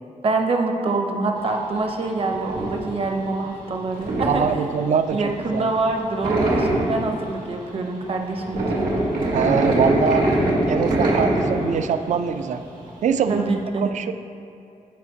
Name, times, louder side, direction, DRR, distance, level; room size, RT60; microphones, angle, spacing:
voice 1, 0.2-4.4 5.1-8.9 13.3-13.9, right 3 dB, 45° right, 2 dB, 0.7 m, -25 dB
sound 1, 1.4-13.5, right 1 dB, 80° right, 1.7 m, -23 dB
voice 2, 4.3-5.7 9.3-10.3 10.7-12.6 13.0-13.4 13.8-14.1, right 7 dB, 60° right, 10 dB, 0.4 m, -23 dB
15.0 x 5.0 x 2.7 m, 2.6 s
wide cardioid pair, 150°, 14 cm